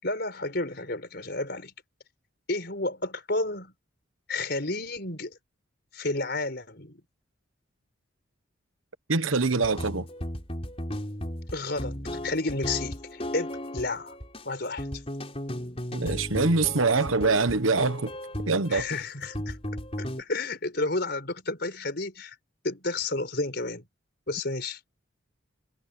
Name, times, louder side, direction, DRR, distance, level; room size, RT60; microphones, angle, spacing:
voice 1, 0.0-1.7 2.5-3.7 4.3-5.4 5.9-7.0 11.5-14.1 14.4-14.9 18.7-19.6 20.0-22.3 22.6-23.8 24.3-24.8, left 2 dB, 55° left, 5.0 m, -31 dB
voice 2, 9.1-10.1 15.9-18.1 18.5-18.8, right 3 dB, 85° right, 1.2 m, -24 dB
sound 1, 9.6-20.2, equal, 30° left, 4.6 m, -35 dB
head